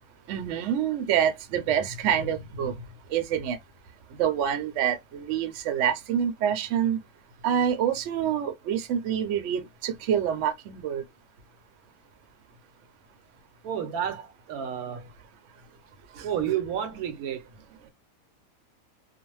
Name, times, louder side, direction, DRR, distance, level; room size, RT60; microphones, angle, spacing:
voice 1, 0.3-2.7 3.1-3.6 4.2-7.0 7.4-11.0 16.2-16.3, right 9 dB, 65° right, 0.9 m, -26 dB
voice 2, 13.6-15.1 16.2-17.4, right 9 dB, 80° right, 1.1 m, -30 dB
2.5 x 2.1 x 3.1 m
omnidirectional pair, 1.5 m